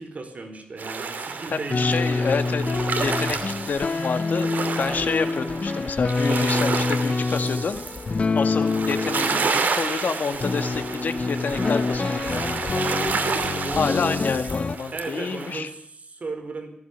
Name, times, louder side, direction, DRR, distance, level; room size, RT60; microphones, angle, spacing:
voice 1, 0.0-2.8 4.8-5.2 13.1-14.2 14.9-16.7, right 3 dB, 50° right, 6 dB, 4.6 m, -35 dB
sound 1, 0.8-15.6, right 4 dB, 70° right, 2.8 m, -30 dB
voice 2, 1.5-2.7 3.0-4.5 4.8-7.8 8.3-12.7 13.8-15.7, left 5 dB, 70° left, 9 dB, 2.1 m, -28 dB
sound 2, 1.7-9.5 10.3-14.8, left 3 dB, 45° left, 0.9 m, -26 dB
18.0 x 15.5 x 9.6 m, 0.71 s
wide cardioid pair, 95°, 3 cm